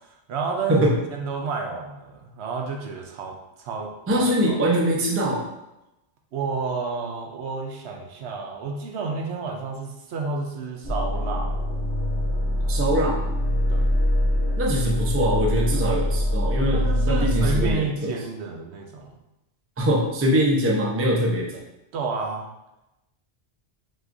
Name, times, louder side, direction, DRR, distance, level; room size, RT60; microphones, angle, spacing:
voice 1, 0.3-4.6 6.3-11.6 13.7-13.9 16.7-19.2 21.9-22.5, right 4 dB, 70° right, 2 dB, 0.8 m, -31 dB
voice 2, 4.1-5.5 12.7-13.2 14.6-18.1 19.8-21.6, equal, 20° right, -2 dB, 0.4 m, -23 dB
sound 1, 10.8-17.7, left 1 dB, 20° left, 1.0 m, -24 dB
6.2 x 2.4 x 2.6 m, 0.93 s
omnidirectional pair, 1.2 m